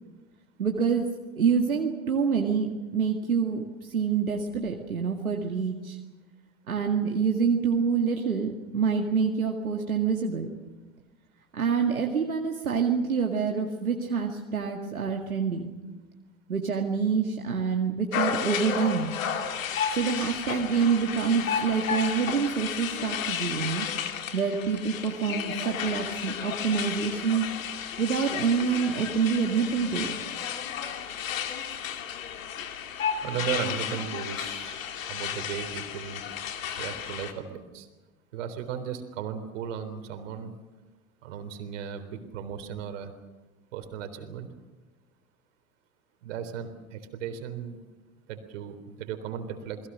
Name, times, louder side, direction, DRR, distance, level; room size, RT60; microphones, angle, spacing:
voice 1, 0.6-1.1 1.4-6.0 6.7-10.5 11.5-15.7 16.5-19.1 19.9-23.9 24.3-27.5 28.0-30.1, right 6 dB, 85° right, 2 dB, 2.1 m, -26 dB
sound 1, 18.1-37.3, left 8 dB, 70° left, 2.8 m, -33 dB
voice 2, 33.2-34.8 35.1-36.2 36.8-37.9 38.3-40.5 41.2-43.1 43.7-44.5 46.2-47.8 48.3-49.9, right 8 dB, 60° right, 8 dB, 3.8 m, -36 dB
28.5 x 21.5 x 6.4 m, 1.2 s
figure-of-eight pair, 90°, 42 cm